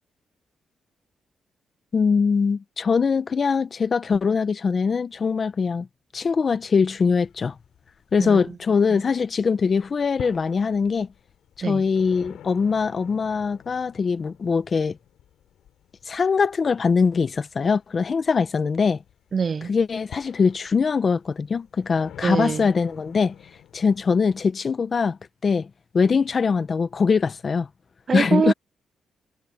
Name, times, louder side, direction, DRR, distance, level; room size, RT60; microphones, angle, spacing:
voice 1, 1.9-5.9 6.1-7.5 8.1-11.1 11.6-15.0 16.1-19.0 19.7-23.3 23.7-25.7 25.9-27.7 28.1-28.5, left 5 dB, 45° left, 1.2 m, -22 dB
sound 1, 7.1-9.2 9.5-24.4, left 11 dB, 90° left, 6.9 m, -48 dB
voice 2, 19.3-19.7 22.2-22.7 28.1-28.5, right 6 dB, 45° right, 0.3 m, -24 dB
cardioid pair, 100°, 0 cm